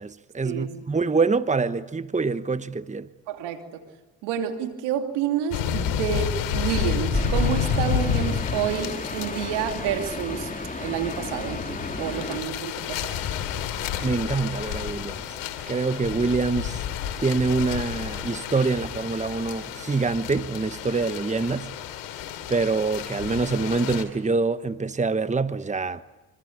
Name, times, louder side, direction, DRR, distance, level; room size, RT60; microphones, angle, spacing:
voice 1, 0.0-3.1 14.0-15.2 15.7-16.8 17.2-21.7 22.5-26.0, right 4 dB, 15° right, 1.2 m, -25 dB
voice 2, 3.3-3.8 4.2-10.5 10.8-13.2, right 9 dB, 85° right, 2.9 m, -29 dB
sound 1, 5.5-24.0, left 8 dB, 85° left, 3.0 m, -31 dB
sound 2, 7.1-12.4, left 2 dB, 20° left, 2.7 m, -32 dB
25.5 x 25.5 x 8.6 m
supercardioid pair, 55°, 42 cm